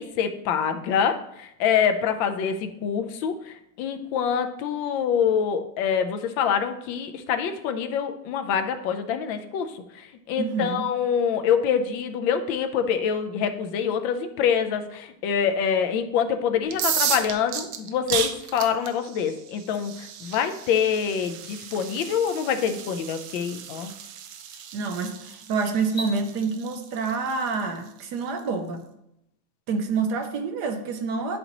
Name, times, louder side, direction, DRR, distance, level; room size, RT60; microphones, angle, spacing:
voice 1, 0.0-23.9, left 7 dB, 85° left, 8 dB, 1.4 m, -25 dB
voice 2, 10.4-10.9 24.7-28.8 29.7-31.4, right 4 dB, 70° right, 6 dB, 1.2 m, -27 dB
sound 1, 16.6-28.4, right 9 dB, 85° right, 1.4 m, -34 dB
sound 2, 22.0-22.2 23.8-23.9 24.4-24.7 25.8-26.2, right 2 dB, 40° left, 1.2 m, -39 dB
11.0 x 4.0 x 2.9 m, 0.80 s
omnidirectional pair, 2.1 m